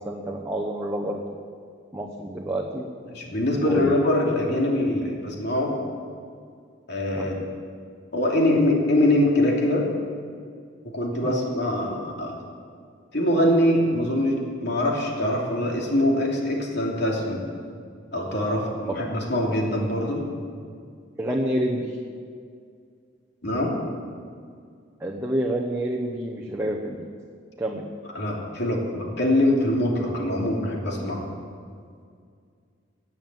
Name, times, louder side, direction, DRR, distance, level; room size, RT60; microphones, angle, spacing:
voice 1, 0.0-1.4 1.9-2.9 3.6-4.0 7.1-7.4 11.2-11.5 18.9-19.0 21.2-22.0 25.0-27.1 27.6-27.9, right 1 dB, 15° right, -2 dB, 0.9 m, -28 dB
voice 2, 3.1-5.8 6.9-7.4 8.1-9.8 10.9-12.4 13.1-14.3 14.6-17.4 18.1-20.2 23.4-23.8 28.1-31.2, left 1 dB, 65° left, -1 dB, 2.9 m, -23 dB
18.0 x 7.3 x 7.8 m, 2.2 s
head